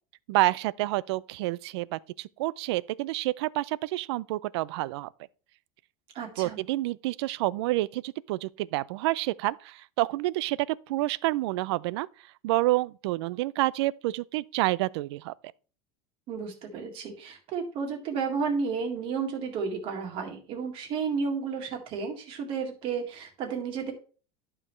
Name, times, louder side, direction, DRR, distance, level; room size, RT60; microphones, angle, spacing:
voice 1, 0.3-5.1 6.4-12.1 12.4-15.3, right 18 dB, 70° right, 0.4 m, -28 dB
voice 2, 6.1-6.6 16.3-23.9, right 5 dB, 40° right, 1.9 m, -32 dB
11.5 x 5.5 x 3.1 m
supercardioid pair, 165°, 14 cm